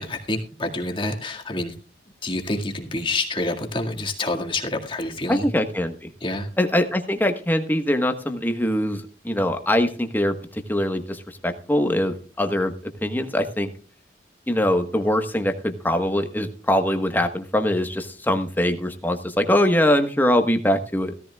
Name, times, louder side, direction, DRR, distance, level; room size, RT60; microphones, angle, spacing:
voice 1, 0.0-1.7 2.2-5.5 6.2-6.5, left 2 dB, 30° left, 2 dB, 2.0 m, -27 dB
voice 2, 5.3-6.1 6.6-12.7 13.0-13.7 14.5-21.2, left 1 dB, 10° left, 6 dB, 1.3 m, -22 dB
16.5 x 14.5 x 2.3 m, 0.38 s
head